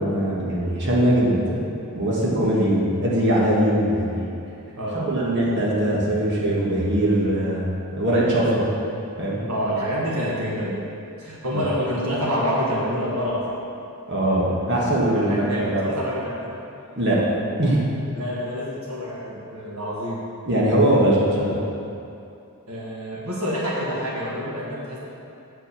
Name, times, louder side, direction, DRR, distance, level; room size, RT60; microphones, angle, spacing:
voice 1, 0.0-1.6 1.9-4.3 4.9-7.7 7.9-8.7 9.2-9.4 11.5-11.6 14.1-15.9 16.9-17.2 17.6-17.8 20.5-21.6, right 1 dB, 55° right, -6 dB, 1.6 m, -21 dB
voice 2, 4.8-5.1 9.5-10.7 11.2-13.6 14.4-14.7 15.0-16.6 18.1-20.2 22.7-25.0, equal, 75° right, -5 dB, 1.5 m, -27 dB
8.3 x 4.7 x 7.0 m, 2.7 s
head